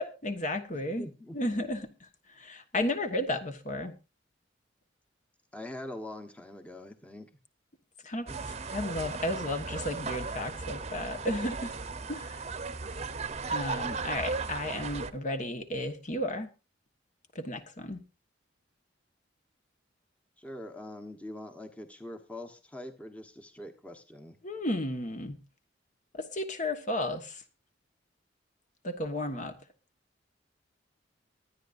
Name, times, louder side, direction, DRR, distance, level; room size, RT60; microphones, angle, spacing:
voice 1, 0.0-1.1 1.3-1.9 2.4-3.9 8.0-8.3 8.7-11.7 12.1-12.4 13.5-16.5 17.3-18.0 24.4-25.4 26.1-27.4 28.8-29.6, left 1 dB, 40° left, 7 dB, 1.4 m, -33 dB
voice 2, 1.0-1.4 5.5-7.3 8.3-8.4 20.4-24.4, left 1 dB, 5° left, 4 dB, 1.2 m, -43 dB
sound 1, 8.3-15.1, right 4 dB, 35° right, 0.9 m, -36 dB
24.0 x 9.9 x 2.6 m, 0.29 s
head